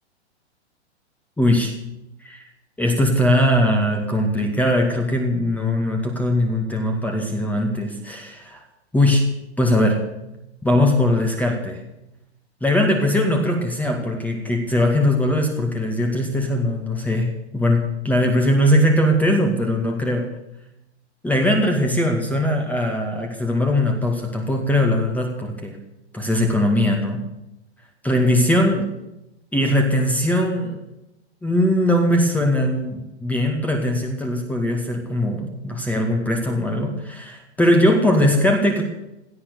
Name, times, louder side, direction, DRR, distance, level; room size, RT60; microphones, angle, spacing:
voice 1, 1.4-1.7 2.2-2.4 2.8-8.6 8.9-9.3 9.6-10.0 10.6-11.8 12.6-20.3 21.2-25.8 26.1-27.2 28.0-28.9 29.5-30.8 31.4-38.8, left 1 dB, 5° left, 2 dB, 2.1 m, -20 dB
17.5 x 12.0 x 6.8 m, 0.88 s
hypercardioid pair, 140°, 34 cm